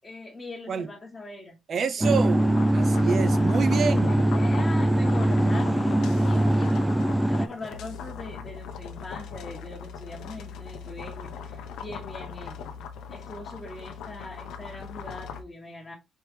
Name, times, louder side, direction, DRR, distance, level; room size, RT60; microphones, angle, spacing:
voice 1, 0.0-1.6 2.0-2.1 3.9-12.7 13.1-16.0, left 2 dB, 20° left, 1.1 m, -41 dB
voice 2, 1.7-4.3, right 6 dB, 55° right, 0.6 m, -28 dB
sound 1, 2.0-7.5, right 1 dB, 10° right, 0.3 m, -22 dB
sound 2, 2.4-15.4, left 6 dB, 85° left, 0.6 m, -39 dB
4.5 x 3.1 x 3.3 m
cardioid pair, 90°, 0 cm